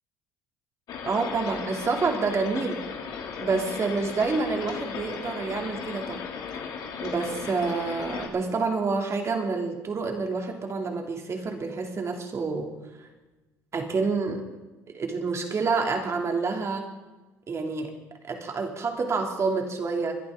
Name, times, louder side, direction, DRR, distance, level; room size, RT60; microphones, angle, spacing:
sound 1, 0.9-8.3, left 6 dB, 65° left, 2.7 m, -36 dB
voice 1, 1.0-2.8 3.4-6.2 7.0-12.7 13.0-13.1 13.7-14.4 14.9-16.9 17.5-17.9 18.3-20.2, right 4 dB, 40° right, 3 dB, 2.9 m, -28 dB
23.0 x 11.0 x 3.9 m, 1.1 s
supercardioid pair, 75°, 8 cm